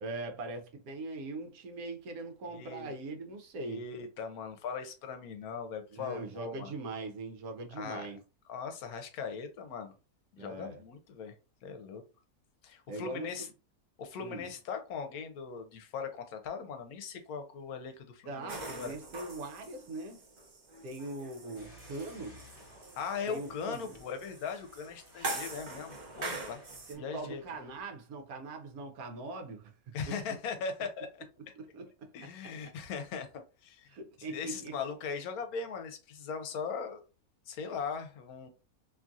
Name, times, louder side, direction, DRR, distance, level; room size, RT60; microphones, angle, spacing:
voice 1, 0.0-3.8 5.9-8.2 10.4-10.8 12.9-13.3 14.2-14.5 18.3-20.2 20.8-22.4 23.3-23.8 26.9-29.7 31.5-32.3 33.9-34.8, right 2 dB, 75° right, 1.2 m, -41 dB
voice 2, 2.5-2.9 3.6-6.7 7.7-8.1 8.5-9.9 10.3-11.3 11.6-12.0 12.6-13.5 14.0-18.9 23.0-26.6 26.9-27.4 29.9-31.5 32.1-33.9 34.2-37.0 37.5-38.5, left 5 dB, 75° left, 1.1 m, -39 dB
sound 1, 18.5-26.9, right 2 dB, 45° right, 0.6 m, -43 dB
sound 2, 21.5-27.8, left 2 dB, 50° left, 1.2 m, -59 dB
2.9 x 2.3 x 2.6 m
omnidirectional pair, 1.6 m